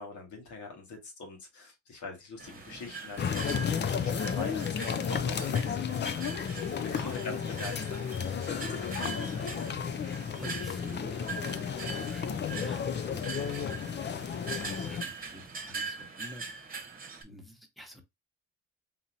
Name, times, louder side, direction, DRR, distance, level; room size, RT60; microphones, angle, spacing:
voice 1, 0.0-9.8, left 3 dB, 75° left, 1.6 m, -44 dB
sound 1, 2.4-17.2, right 4 dB, 30° right, 1.1 m, -42 dB
sound 2, 3.2-15.0, left 7 dB, 35° left, 0.5 m, -33 dB
voice 2, 6.9-7.4 10.3-16.5 17.2-18.0, equal, ahead, 1.1 m, -49 dB
4.0 x 2.9 x 2.7 m
cardioid pair, 90°, 30 cm